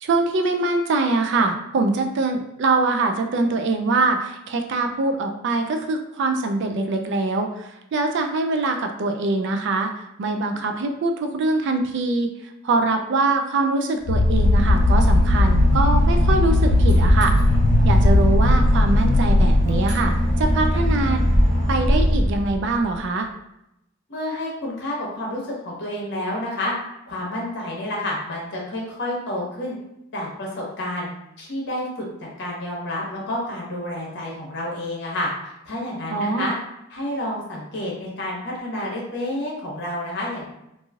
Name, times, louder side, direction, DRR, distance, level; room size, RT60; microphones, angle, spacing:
voice 1, 0.0-12.3 12.6-17.4 17.8-21.2 21.7-23.3 36.1-36.5, right 3 dB, 60° right, 5 dB, 0.4 m, -23 dB
Boat Water vehicle / Engine, 14.0-23.0, equal, 35° right, 1.3 m, -22 dB
sound 1, 14.1-20.3, left 1 dB, 85° left, 0.3 m, -18 dB
voice 2, 24.1-26.7 27.1-29.7 30.1-31.1 31.4-35.3 35.6-36.5 36.9-40.4, left 1 dB, 60° left, -3 dB, 1.0 m, -29 dB
3.0 x 2.6 x 2.4 m, 0.85 s
head